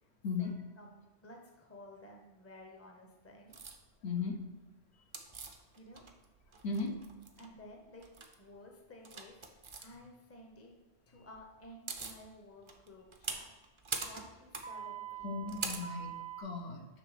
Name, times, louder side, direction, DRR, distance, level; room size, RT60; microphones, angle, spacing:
voice 1, 0.4-3.6 5.7-6.0 7.4-8.1 8.4-10.7 11.1-13.5 13.9-15.6, left 1 dB, 15° left, 1 dB, 0.7 m, -54 dB
sound 1, 3.5-3.8 5.1-6.2 6.5-7.5 8.0-8.3 9.0-9.8 11.4-11.5 11.6-12.2 12.7-16.4, right 5 dB, 40° right, 0.5 m, -42 dB
voice 2, 4.0-4.4 6.6-7.0 15.2-16.9, left 4 dB, 70° left, 2 dB, 1.1 m, -36 dB
7.0 x 3.3 x 4.9 m, 1.1 s
omnidirectional pair, 1.1 m